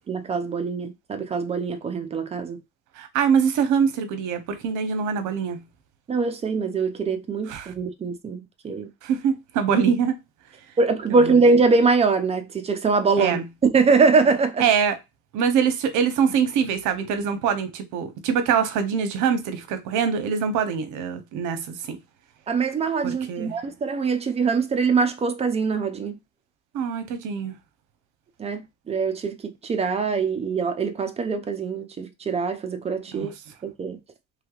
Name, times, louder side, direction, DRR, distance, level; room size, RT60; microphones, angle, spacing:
voice 1, 0.1-2.6 6.1-8.9 10.8-14.6 22.5-26.2 28.4-28.6 28.9-33.3 33.6-34.0, right 4 dB, 20° right, 0.4 m, -23 dB
voice 2, 3.0-5.6 7.5-7.7 9.0-10.2 11.1-11.4 13.2-13.4 14.6-15.0 15.3-22.0 23.0-23.6 26.7-27.5 33.2-33.3, right 7 dB, 70° right, 0.8 m, -24 dB
3.3 x 3.1 x 2.3 m
cardioid pair, 165°, 31 cm